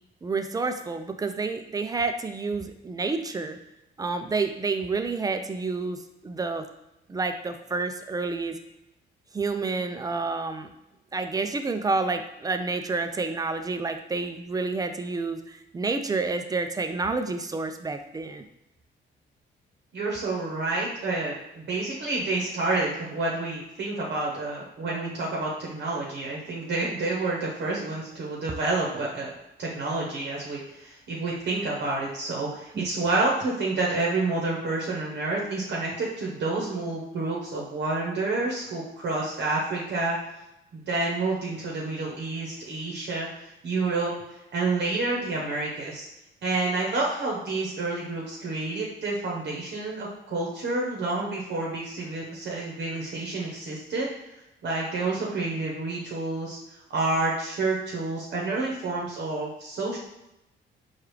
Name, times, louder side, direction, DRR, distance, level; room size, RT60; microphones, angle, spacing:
voice 1, 0.2-3.6 4.0-6.7 7.1-8.6 9.3-10.7 11.1-18.4 32.7-32.9, right 3 dB, 20° right, 8 dB, 0.3 m, -29 dB
voice 2, 19.9-29.3 29.6-40.2 40.7-46.0 46.4-54.1 54.6-60.0, right 3 dB, 60° right, -3 dB, 0.8 m, -29 dB
4.6 x 2.4 x 3.2 m, 0.89 s
cardioid pair, 90°, 20 cm